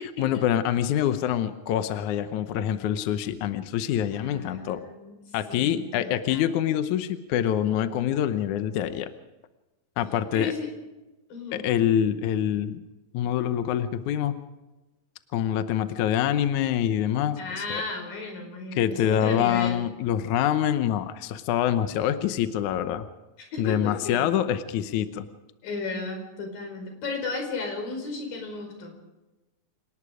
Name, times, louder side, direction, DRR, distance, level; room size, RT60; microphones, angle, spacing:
voice 1, 0.2-4.8 5.3-9.1 10.0-10.5 11.5-12.8 13.1-14.4 15.3-17.4 17.7-17.8 18.8-23.1 23.6-25.3, left 10 dB, 70° left, 10 dB, 2.1 m, -25 dB
voice 2, 4.1-6.5 10.3-10.7 11.3-11.6 17.4-19.9 23.5-24.3 25.6-28.9, left 3 dB, 85° left, 3 dB, 6.5 m, -34 dB
28.5 x 18.5 x 5.0 m, 1.1 s
omnidirectional pair, 3.9 m